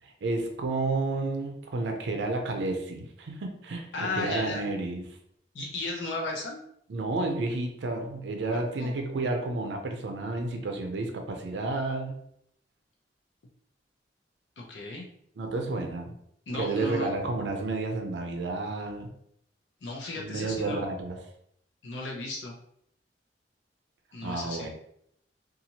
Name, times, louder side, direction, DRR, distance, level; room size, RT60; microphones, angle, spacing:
voice 1, 0.0-5.0 6.9-12.2 15.4-16.1 16.5-19.1 20.2-21.2 24.2-24.7, right 2 dB, 75° right, 4 dB, 0.4 m, -31 dB
voice 2, 3.9-4.6 5.5-6.6 8.8-8.9 14.6-15.1 16.5-17.1 19.8-20.8 21.8-22.5 24.1-24.7, left 2 dB, 85° left, -1 dB, 0.6 m, -35 dB
2.7 x 2.4 x 2.8 m, 0.72 s
head